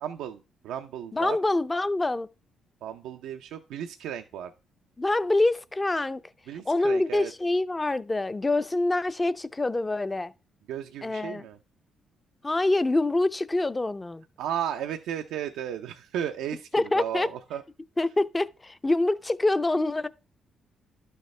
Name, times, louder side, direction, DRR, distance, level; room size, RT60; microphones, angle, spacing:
voice 1, 0.0-1.4 2.8-4.5 6.5-7.3 10.7-11.6 14.4-17.6, right 9 dB, 90° right, 0.6 m, -34 dB
voice 2, 1.1-2.3 5.0-6.2 6.7-10.3 11.0-11.5 12.4-14.2 16.7-17.3 18.0-20.1, left 2 dB, 20° left, 0.5 m, -25 dB
11.5 x 6.6 x 3.3 m
cardioid pair, 90°, 0 cm